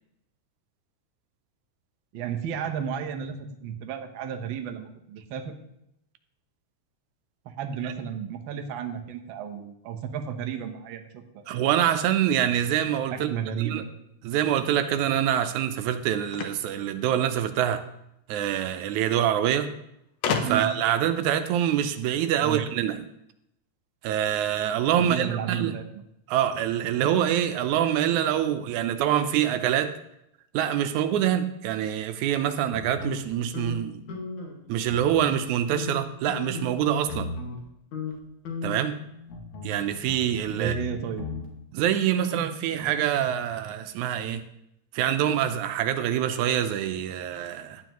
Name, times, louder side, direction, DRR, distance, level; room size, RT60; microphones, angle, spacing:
voice 1, 2.1-5.6 7.4-11.4 13.1-13.9 20.4-20.7 22.4-22.6 25.0-26.0 40.5-41.3, right 8 dB, 65° right, 1.3 m, -33 dB
voice 2, 11.5-13.3 13.7-13.8 14.2-17.9 18.3-19.7 20.4-23.1 24.0-25.7 26.3-29.9 30.5-34.0 34.7-37.3 38.6-39.0 39.6-40.8 41.7-44.4 44.9-47.8, right 10 dB, 85° right, 2.1 m, -25 dB
sound 1, 16.3-17.7 18.8-18.9 19.2-19.3 20.2-20.9, left 6 dB, 65° left, 1.9 m, -31 dB
sound 2, 32.7-34.6 34.9-35.5 35.7-37.6 37.9-38.2 38.4-41.5, left 3 dB, 85° left, 3.3 m, -36 dB
12.0 x 9.2 x 3.0 m
omnidirectional pair, 3.3 m